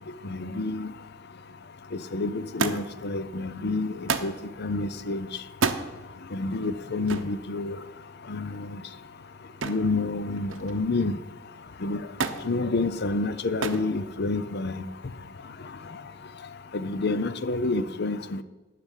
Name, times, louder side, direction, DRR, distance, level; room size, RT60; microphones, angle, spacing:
voice 1, 0.3-0.9 2.1-3.9 4.2-4.3 4.6-5.3 6.3-7.8 8.3-8.7 9.6-11.1 11.8-12.0 12.4-14.8 16.7-18.2, left 3 dB, 55° left, 13 dB, 0.6 m, -28 dB
Thump thud, 2.6-3.1 4.1-4.4 5.5-5.9 7.1-7.3 9.6-9.9 10.3-10.8 12.2-12.5 13.6-13.9 14.8-15.3 16.3-16.4, right 5 dB, 80° right, 0.8 m, -29 dB
11.0 x 5.9 x 8.2 m, 1.2 s
head